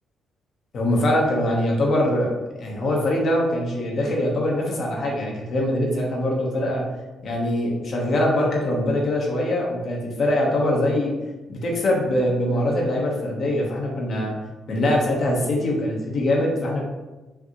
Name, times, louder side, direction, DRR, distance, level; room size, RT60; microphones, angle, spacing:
voice 1, 0.7-2.3 2.6-6.8 7.2-11.1 11.5-14.3 14.7-16.8, left 1 dB, 55° left, -1 dB, 1.2 m, -23 dB
5.7 x 2.8 x 3.0 m, 1.2 s
cardioid pair, 90°, 0 cm